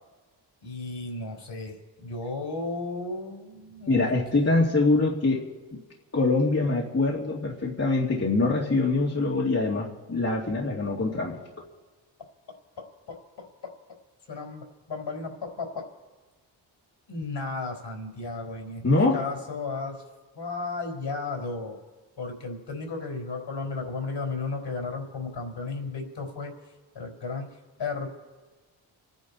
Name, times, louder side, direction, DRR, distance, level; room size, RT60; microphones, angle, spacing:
voice 1, 0.6-4.6 12.8-13.7 14.3-15.9 17.1-20.0 20.3-21.8 22.2-26.5 26.9-27.5 27.8-28.1, left 3 dB, 55° left, 2 dB, 4.4 m, -34 dB
voice 2, 3.9-5.4 6.1-11.4 18.8-19.2, left 3 dB, 30° left, -3 dB, 2.6 m, -24 dB
28.0 x 10.0 x 4.2 m, 1.3 s
supercardioid pair, 45°, 50 cm